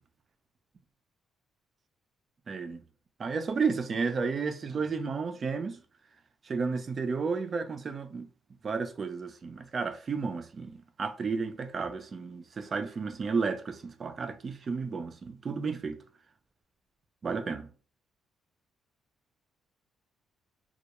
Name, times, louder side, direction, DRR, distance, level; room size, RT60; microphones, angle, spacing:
voice 1, 2.5-2.8 3.2-5.8 6.5-8.3 8.6-16.0 17.2-17.7, right 5 dB, 45° right, 0.3 m, -32 dB
2.2 x 2.1 x 2.9 m
cardioid pair, 90°, 0 cm